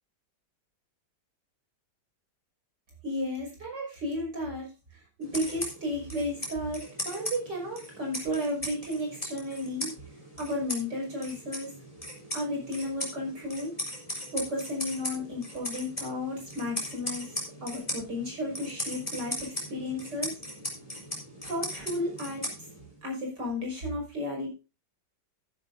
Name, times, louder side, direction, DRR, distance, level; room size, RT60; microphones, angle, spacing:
voice 1, 3.0-9.9 10.4-11.7 12.3-13.7 14.3-17.3 17.6-20.4 21.4-22.7 23.0-24.6, left 1 dB, 80° right, 0 dB, 6.6 m, -33 dB
sound 1, 5.2-23.0, left 1 dB, 20° left, 4.2 m, -38 dB
13.5 x 11.5 x 2.6 m, 0.29 s
omnidirectional pair, 1.8 m